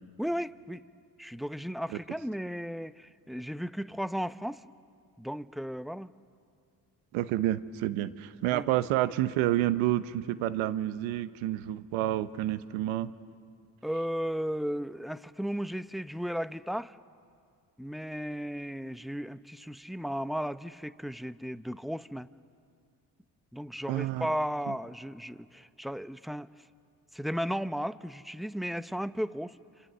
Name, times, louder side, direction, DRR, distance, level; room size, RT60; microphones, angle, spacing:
voice 1, 0.2-0.8 1.2-4.6 5.2-6.1 8.5-8.7 13.8-16.9 17.8-22.3 23.5-26.5 27.1-29.5, equal, ahead, 14 dB, 0.7 m, -35 dB
voice 2, 7.1-13.1 23.9-24.3 24.7-24.8, right 14 dB, 90° right, 15 dB, 0.9 m, -29 dB
28.0 x 27.0 x 6.9 m, 2.3 s
supercardioid pair, 60°, 46 cm